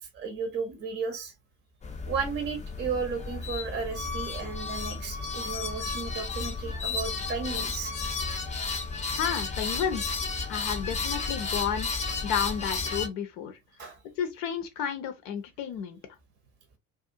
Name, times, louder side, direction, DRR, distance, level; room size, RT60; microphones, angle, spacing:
voice 1, 0.1-1.3 2.0-7.9 13.8-14.0, right 5 dB, 25° right, 0.7 m, -34 dB
sound 1, 1.8-13.1, left 4 dB, 15° left, 0.6 m, -33 dB
voice 2, 9.2-10.2 10.5-11.9 12.2-13.6 14.2-16.0, left 8 dB, 55° left, 0.6 m, -31 dB
2.4 x 2.3 x 2.5 m
figure-of-eight pair, 65°, 45 cm